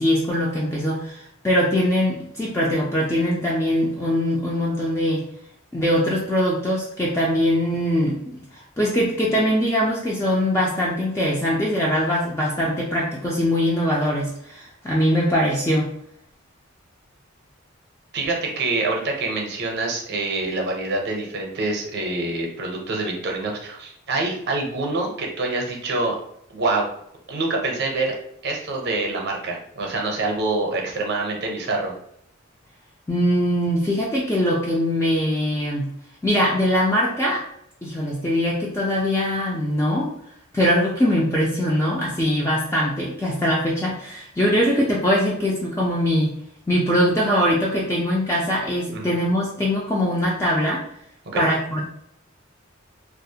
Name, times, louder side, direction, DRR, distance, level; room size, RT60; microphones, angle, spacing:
voice 1, 0.0-5.2 5.7-15.9 33.1-35.9 36.2-37.4 37.8-40.1 40.5-46.3 46.7-50.8 51.3-51.8, equal, 15° left, -5 dB, 0.3 m, -22 dB
voice 2, 18.1-26.2 26.5-26.9 27.3-28.2 28.4-31.9 48.9-49.1 51.3-51.4, right 2 dB, 55° right, 0 dB, 0.6 m, -26 dB
2.4 x 2.0 x 2.7 m, 0.71 s
head